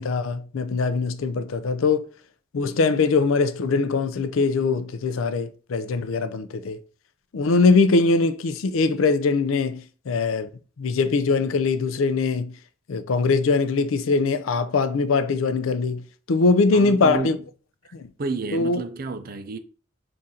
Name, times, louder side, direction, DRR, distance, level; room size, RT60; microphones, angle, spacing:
voice 1, 0.0-2.1 2.5-6.8 7.3-10.5 10.8-12.5 12.9-16.0 16.3-17.4 17.9-18.1 18.5-18.8, left 4 dB, 80° left, 0.4 m, -22 dB
voice 2, 16.7-17.3 17.8-19.6, right 3 dB, 45° right, 0.4 m, -31 dB
3.8 x 2.5 x 4.2 m
head